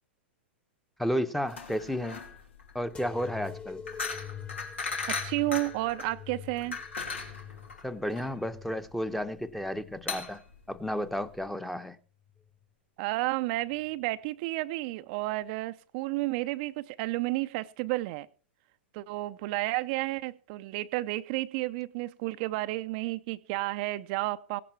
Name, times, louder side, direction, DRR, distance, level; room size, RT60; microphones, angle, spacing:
voice 1, 1.0-2.2 2.7-3.8 7.8-10.4 10.7-12.0, equal, ahead, 1.0 m, -32 dB
sound 1, 1.5-11.5, left 4 dB, 85° left, 2.8 m, -38 dB
sound 2, 2.9-10.2 10.7-11.5 12.2-12.7 13.7-13.8, left 8 dB, 15° left, 1.4 m, -46 dB
voice 2, 5.1-6.8 13.0-18.3 18.9-24.6, right 19 dB, 50° right, 0.6 m, -31 dB
17.0 x 11.0 x 4.5 m
hypercardioid pair, 105°, 6 cm